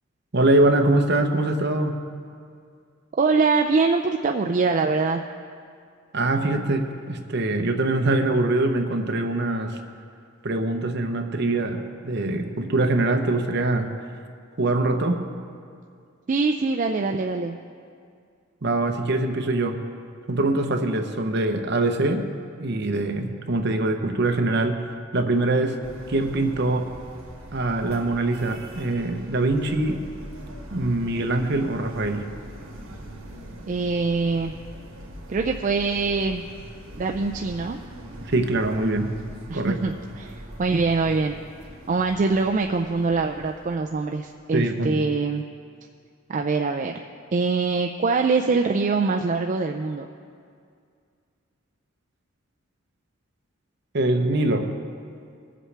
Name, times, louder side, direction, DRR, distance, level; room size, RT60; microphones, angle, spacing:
voice 1, 0.3-2.0 6.1-9.8 10.4-13.9 14.6-15.2 18.6-19.8 20.3-22.3 22.6-25.8 26.1-26.9 27.5-30.0 30.7-32.3 38.3-39.1 39.5-39.8 44.5-45.0 53.9-54.7, right 2 dB, 55° right, 5 dB, 0.8 m, -23 dB
voice 2, 3.2-5.2 16.3-17.6 33.7-34.6 35.3-36.4 37.0-37.8 39.5-40.3 40.6-41.4 41.9-45.4 46.3-47.0 47.3-50.1, right 4 dB, 35° right, 3 dB, 0.3 m, -23 dB
sound 1, 25.8-44.6, right 1 dB, 75° right, 1.7 m, -42 dB
20.5 x 7.5 x 3.3 m, 2.3 s
head